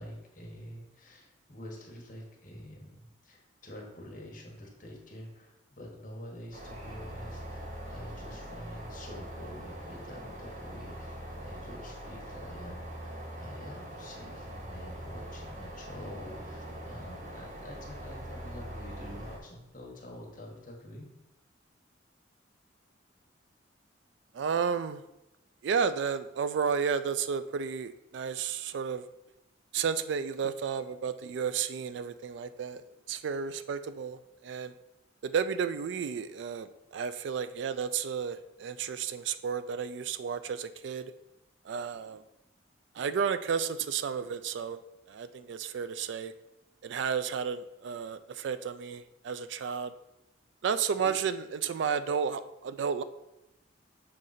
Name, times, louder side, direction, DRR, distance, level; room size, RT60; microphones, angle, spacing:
voice 1, 0.0-21.1, left 1 dB, 40° left, -1 dB, 1.3 m, -47 dB
sound 1, 6.5-19.4, right 1 dB, 40° right, 0.9 m, -42 dB
voice 2, 24.3-25.0 25.6-29.0 29.7-32.8 33.1-34.7 35.2-41.1 41.6-42.2 43.0-44.8 45.1-46.3 46.8-49.9 50.6-53.0, right 6 dB, 70° right, 12 dB, 0.3 m, -32 dB
6.6 x 3.7 x 4.1 m, 0.92 s
head